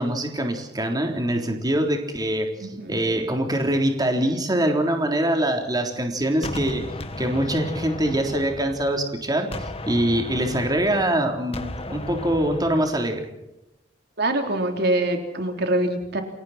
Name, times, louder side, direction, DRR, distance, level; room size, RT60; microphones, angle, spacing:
voice 1, 0.0-6.8 7.2-13.3, right 1 dB, 20° right, 3 dB, 3.7 m, -24 dB
voice 2, 2.6-3.0 14.2-16.2, right 1 dB, 60° right, 4 dB, 3.6 m, -24 dB
Gunshot gunfire, 6.4-9.1 9.5-13.1, left 1 dB, 35° left, 2.1 m, -35 dB
29.0 x 23.0 x 4.4 m, 0.88 s
head